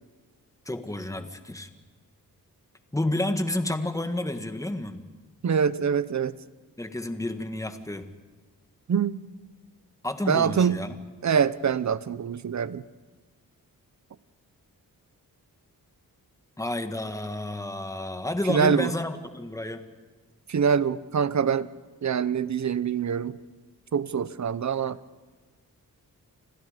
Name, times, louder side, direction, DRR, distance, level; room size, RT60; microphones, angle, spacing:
voice 1, 0.6-1.7 2.9-5.0 6.8-8.1 10.0-11.0 16.6-19.9, left 1 dB, 10° left, 8 dB, 1.8 m, -30 dB
voice 2, 5.4-6.4 8.9-9.2 10.3-10.8 11.2-12.8 18.5-18.9 20.5-21.7 22.0-23.4 23.9-25.0, right 7 dB, 55° right, 16 dB, 1.0 m, -24 dB
28.5 x 26.5 x 5.2 m, 1.4 s
wide cardioid pair, 105°, 35 cm